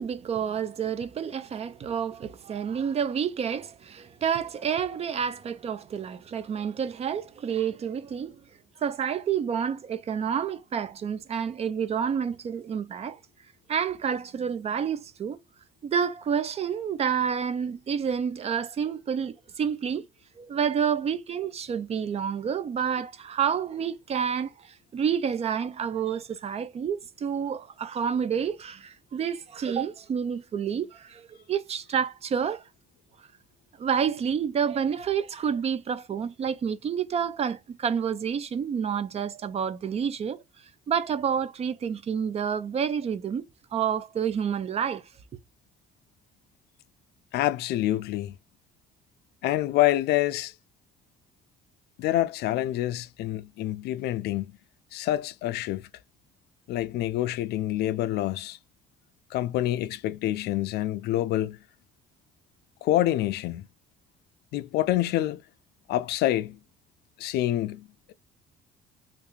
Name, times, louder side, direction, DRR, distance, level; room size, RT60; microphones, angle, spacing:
voice 1, 0.0-8.4 8.8-13.2 13.7-15.4 15.8-20.0 20.4-32.6 33.8-40.4 40.9-43.4 43.7-45.0, right 7 dB, 40° right, 0.5 m, -29 dB
voice 2, 47.3-48.3 49.4-50.5 52.0-54.5 54.9-55.9 56.7-58.6 59.3-61.6 62.8-63.7 64.5-65.4 65.9-66.6 67.2-68.1, left 14 dB, 75° left, 0.4 m, -27 dB
3.3 x 2.5 x 3.1 m
cardioid pair, 110°, 17 cm